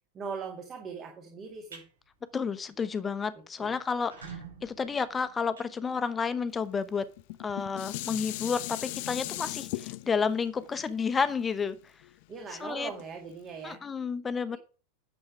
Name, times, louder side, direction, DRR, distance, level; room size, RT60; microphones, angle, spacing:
voice 1, 0.1-1.8 3.6-3.7 9.3-9.4 12.3-13.8 14.5-14.6, right 5 dB, 25° right, 4 dB, 1.9 m, -40 dB
sound 1, 1.4-1.9 2.3-2.6 2.9-3.0 3.2-3.3 3.9-6.4, right 6 dB, 65° right, 5.2 m, -47 dB
voice 2, 2.3-4.4 4.6-7.1 7.4-11.8 12.5-12.9 13.6-14.6, left 5 dB, 15° left, 15 dB, 0.9 m, -31 dB
Dishes pots and pans, 7.2-12.4 13.0-13.1, left 19 dB, 50° left, 0.5 m, -38 dB
9.7 x 7.3 x 4.9 m, 0.37 s
figure-of-eight pair, 90°, 0 cm